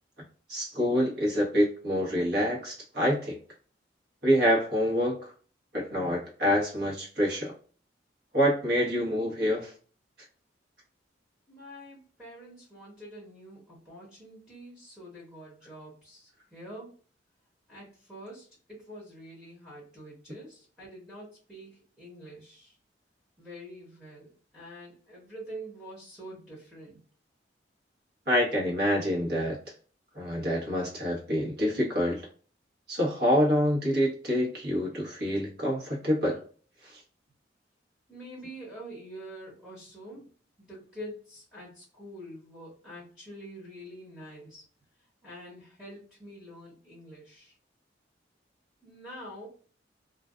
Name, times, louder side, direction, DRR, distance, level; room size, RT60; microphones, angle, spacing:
voice 1, 0.5-3.4 4.2-5.3 5.7-7.5 8.3-9.7 28.3-29.6 30.1-32.3 32.9-36.4 36.8-36.9, equal, 60° right, -2 dB, 1.1 m, -26 dB
voice 2, 11.5-16.9 17.7-22.8 23.4-27.0 38.1-40.3 40.6-44.6 45.2-47.5 48.8-49.5, equal, 5° right, -7 dB, 0.9 m, -46 dB
2.5 x 2.2 x 2.3 m, 0.41 s
head